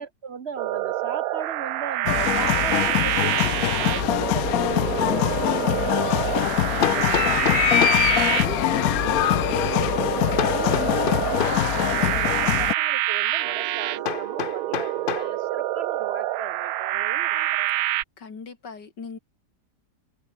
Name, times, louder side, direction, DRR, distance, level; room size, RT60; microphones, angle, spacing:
voice 1, 0.0-8.0 8.3-17.8, right 6 dB, 45° right, 1.1 m, -37 dB
sound 1, 0.6-18.0, right 14 dB, 70° right, 1.0 m, -27 dB
sound 2, 2.1-12.7, left 14 dB, 70° left, 1.0 m, -23 dB
Hammer, 6.8-8.1 10.4-11.7 14.0-15.3, left 8 dB, 50° left, 0.6 m, -28 dB
voice 2, 7.9-8.3 18.2-19.2, left 5 dB, 85° left, 3.4 m, -39 dB
omnidirectional pair, 1.8 m